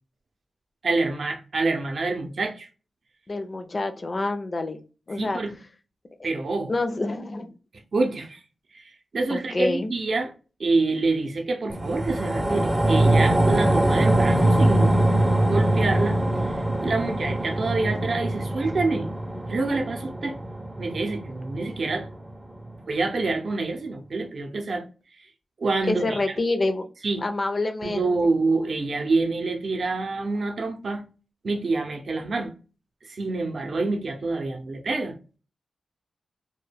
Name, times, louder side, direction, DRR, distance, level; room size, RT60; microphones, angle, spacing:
voice 1, 0.8-2.7 5.1-5.6 6.2-6.7 7.9-8.4 8.7-10.3 10.6-15.0 15.4-16.2 16.5-19.1 19.5-20.4 20.8-22.1 22.9-24.9 25.6-26.2 27.0-27.2 27.8-31.0 31.4-32.5 33.0-35.2, right 3 dB, 65° right, 0.5 m, -27 dB
voice 2, 3.3-5.4 6.2-6.3 6.7-7.5 9.3-9.9 25.8-26.9 27.2-28.3, left 2 dB, 45° left, 0.5 m, -27 dB
sound 1, 11.7-22.3 22.7-22.8, right 1 dB, 15° right, 0.5 m, -23 dB
2.2 x 2.2 x 3.3 m
cardioid pair, 65°, 0 cm